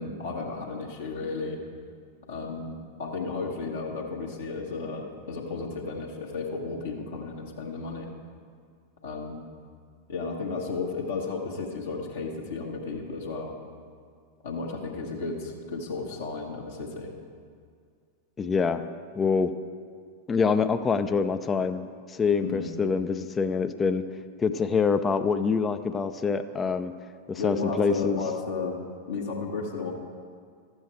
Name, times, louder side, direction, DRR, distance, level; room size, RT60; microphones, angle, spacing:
voice 1, 0.0-1.6 2.3-8.1 9.0-9.4 10.1-13.6 14.4-17.1 22.4-22.7 27.4-28.8 29.1-29.9, left 4 dB, 65° left, -3 dB, 1.3 m, -33 dB
voice 2, 18.4-18.8 19.2-19.5 20.3-24.0 24.4-26.9 27.3-28.2, left 5 dB, 20° left, 10 dB, 0.5 m, -25 dB
12.5 x 7.9 x 4.4 m, 2.2 s
figure-of-eight pair, 90°, 0 cm